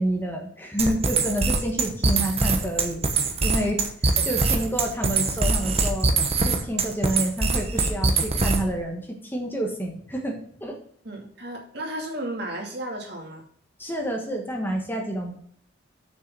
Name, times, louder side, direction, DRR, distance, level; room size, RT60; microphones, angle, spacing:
voice 1, 0.0-3.0 3.4-10.7 13.8-15.4, right 1 dB, 10° left, 2 dB, 1.3 m, -29 dB
sound 1, 0.8-8.8, right 3 dB, 35° right, 1.1 m, -23 dB
voice 2, 11.0-13.5, right 1 dB, 60° right, 0 dB, 2.6 m, -34 dB
6.7 x 6.3 x 6.1 m, 0.63 s
head